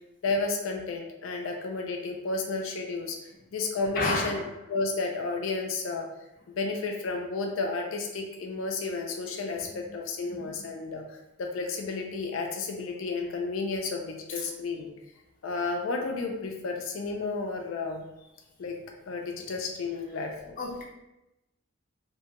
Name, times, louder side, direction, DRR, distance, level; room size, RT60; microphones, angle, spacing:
voice 1, 0.2-4.4 4.7-6.1 6.5-11.0 11.4-14.9 15.4-18.0 18.6-18.8 19.1-20.6, left 3 dB, 70° left, 2 dB, 0.4 m, -32 dB
voice 2, 4.0-4.5 9.8-10.0 10.3-10.7 14.3-14.4 20.6-20.8, left 2 dB, 40° left, -5 dB, 0.7 m, -32 dB
2.9 x 2.2 x 2.8 m, 0.93 s
head